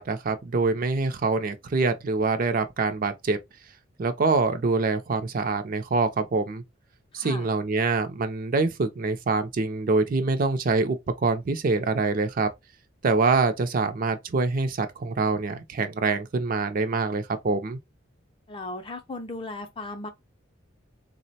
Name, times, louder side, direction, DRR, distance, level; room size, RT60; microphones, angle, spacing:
voice 1, 0.0-3.4 4.0-6.6 7.1-12.5 13.0-17.8, right 3 dB, 45° right, 0.4 m, -25 dB
voice 2, 7.1-7.5 18.5-20.1, left 2 dB, 25° left, 0.5 m, -36 dB
3.7 x 2.0 x 2.7 m
head